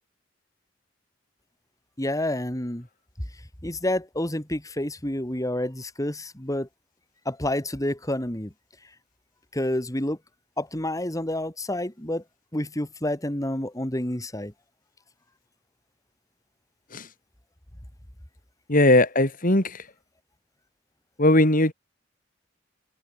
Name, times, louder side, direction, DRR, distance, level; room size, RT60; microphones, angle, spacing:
voice 1, 2.0-2.9 3.6-6.7 7.3-8.5 9.5-10.2 10.6-12.2 12.5-14.5, left 1 dB, 20° left, 2.5 m, -29 dB
voice 2, 18.7-19.9 21.2-21.7, left 1 dB, 45° left, 4.4 m, -19 dB
head